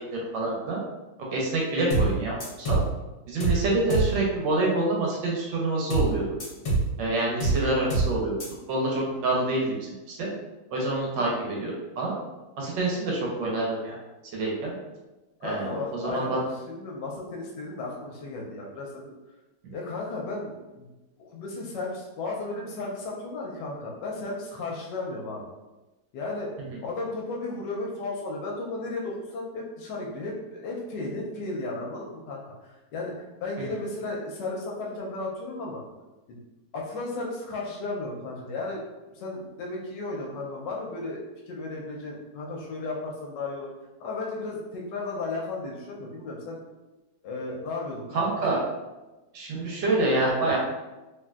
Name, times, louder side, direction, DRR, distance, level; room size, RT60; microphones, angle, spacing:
voice 1, 0.3-0.8 1.3-2.8 3.3-6.2 7.0-8.4 8.7-10.3 10.7-12.2 12.6-14.0 14.3-14.7 15.4-15.7 16.0-16.4 48.1-48.6 49.3-50.6, right 2 dB, 75° right, -2 dB, 1.3 m, -27 dB
sound 1, 1.9-2.1 2.4-2.9 3.4-3.6 3.9-4.1 5.9-6.1 6.4-6.9 7.4-7.6 7.9-8.1 8.4-8.5, right 2 dB, 50° left, 0.9 m, -24 dB
voice 2, 15.4-19.1 19.7-20.9 21.2-25.5 26.1-26.5 26.8-35.8 36.3-36.4 36.7-38.9 39.1-43.7 44.0-46.6 47.2-48.2, left 2 dB, 75° left, -2 dB, 1.1 m, -34 dB
3.2 x 2.6 x 2.3 m, 1.1 s
omnidirectional pair, 2.1 m